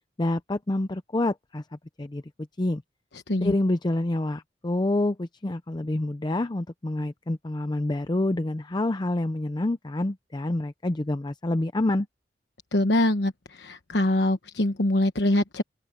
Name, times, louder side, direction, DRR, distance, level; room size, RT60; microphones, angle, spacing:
voice 1, 0.2-1.6 2.0-2.2 2.6-2.8 3.4-12.1, left 1 dB, 25° left, 0.6 m, -27 dB
voice 2, 12.7-13.3 13.6-15.6, left 1 dB, 70° left, 1.2 m, -23 dB
open air
head